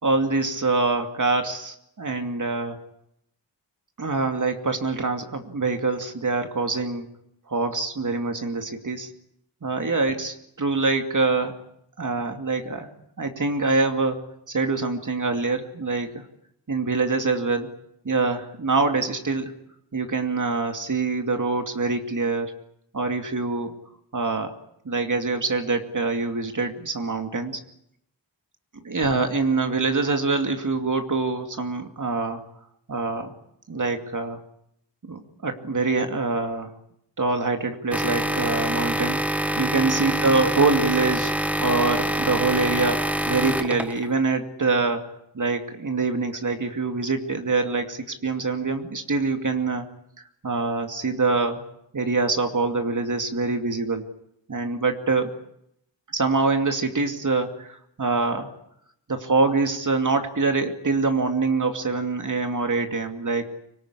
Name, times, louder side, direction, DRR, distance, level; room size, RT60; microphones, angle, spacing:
voice 1, 0.0-2.8 4.0-7.1 7.5-9.1 9.6-11.5 12.0-12.9 13.2-14.2 14.5-16.2 16.7-17.7 18.0-19.5 19.9-22.5 22.9-23.8 24.1-24.5 24.8-27.6 28.9-32.4 32.9-33.3 33.7-34.4 35.1-36.7 37.2-39.2 39.6-41.3 41.6-45.1 45.3-49.9 50.4-51.6 51.9-54.1 54.5-55.3 56.1-58.5 59.1-63.5, right 3 dB, 45° right, 5 dB, 2.5 m, -25 dB
sound 1, 37.9-44.1, equal, 5° right, 1.4 m, -25 dB
25.0 x 19.0 x 9.8 m, 0.75 s
wide cardioid pair, 90°, 44 cm